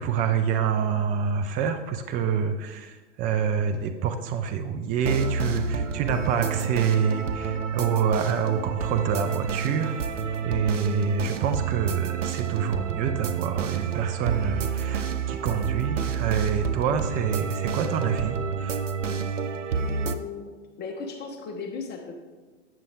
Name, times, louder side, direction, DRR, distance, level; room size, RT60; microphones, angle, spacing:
voice 1, 0.0-10.2 10.4-18.8, right 7 dB, 25° right, 8 dB, 0.5 m, -27 dB
sound 1, 5.0-20.2, right 6 dB, 90° right, 0.7 m, -29 dB
voice 2, 19.7-20.5 20.8-22.2, left 4 dB, 25° left, 2 dB, 1.1 m, -37 dB
9.0 x 6.8 x 3.5 m, 1.3 s
hypercardioid pair, 105°, 36 cm